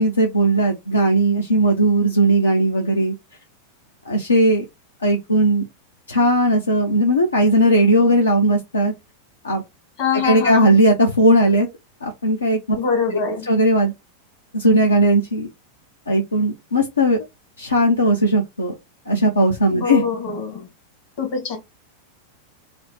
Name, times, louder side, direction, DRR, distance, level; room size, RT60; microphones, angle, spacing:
voice 1, 0.0-3.1 4.1-4.7 5.0-5.6 6.1-8.9 9.4-9.6 10.1-11.7 12.0-12.8 13.1-13.9 14.5-15.5 16.1-17.3 17.6-18.7 19.1-20.0, right 1 dB, 75° left, 0.6 m, -17 dB
voice 2, 10.0-10.7 12.7-13.5 19.8-20.7 21.2-21.6, left 5 dB, 45° left, 1.5 m, -24 dB
3.0 x 2.0 x 4.1 m
figure-of-eight pair, 90°, 0 cm